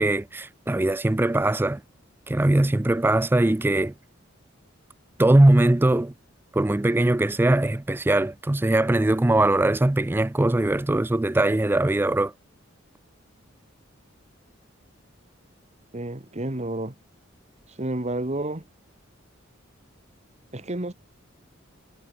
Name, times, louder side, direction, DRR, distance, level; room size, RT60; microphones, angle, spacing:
voice 1, 0.0-1.8 2.3-3.9 5.2-6.1 6.5-12.3, right 1 dB, 10° right, 0.4 m, -21 dB
voice 2, 15.9-16.9 17.7-18.6 20.5-20.9, right 1 dB, 35° right, 1.7 m, -30 dB
head